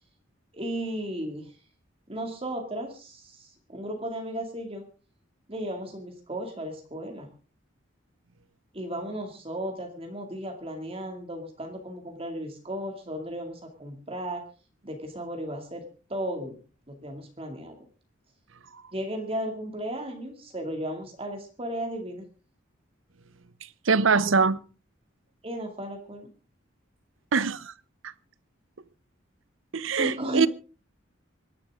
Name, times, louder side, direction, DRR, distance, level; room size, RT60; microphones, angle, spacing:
voice 1, 0.5-1.6 2.1-4.9 5.5-7.3 8.7-14.4 14.8-15.8 16.1-16.6 16.9-17.8 18.9-22.3 25.4-26.3 30.0-30.5, right 1 dB, 30° right, 2.4 m, -35 dB
voice 2, 23.8-24.6 27.3-27.7 28.0-28.1 29.7-30.5, right 5 dB, 80° right, 0.8 m, -23 dB
25.5 x 11.0 x 3.7 m
head